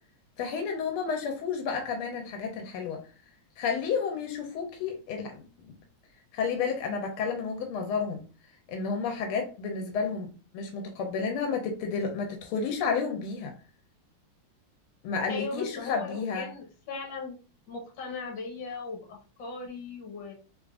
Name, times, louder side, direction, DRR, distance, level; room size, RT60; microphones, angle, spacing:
voice 1, 0.4-3.0 3.6-5.7 6.3-8.2 8.7-10.3 10.5-13.5 15.0-16.5, left 5 dB, 85° left, 1.6 m, -31 dB
voice 2, 15.3-17.4 17.7-20.3, left 4 dB, 65° left, 1.8 m, -38 dB
3.6 x 3.6 x 2.4 m
omnidirectional pair, 2.3 m